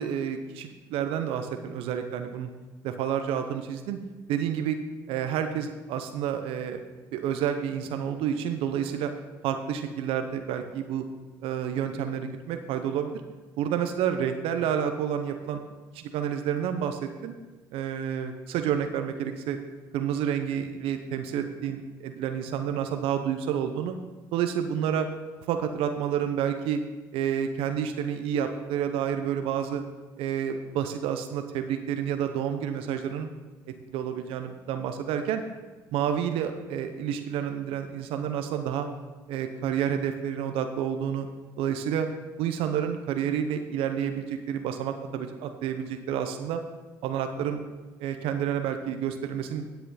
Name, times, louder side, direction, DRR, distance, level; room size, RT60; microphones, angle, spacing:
voice 1, 0.0-2.5 2.8-4.0 4.3-4.8 5.1-6.8 7.1-9.1 9.4-11.0 11.4-13.2 13.6-15.6 15.9-17.3 17.7-19.6 19.9-23.9 24.3-25.1 25.5-26.8 27.1-29.8 30.2-33.3 33.9-35.4 35.9-38.9 39.3-41.3 41.6-42.1 42.4-46.6 47.0-47.6 48.0-49.7, right 9 dB, 75° right, 7 dB, 0.8 m, -29 dB
10.5 x 7.9 x 4.1 m, 1.2 s
supercardioid pair, 65°, 10 cm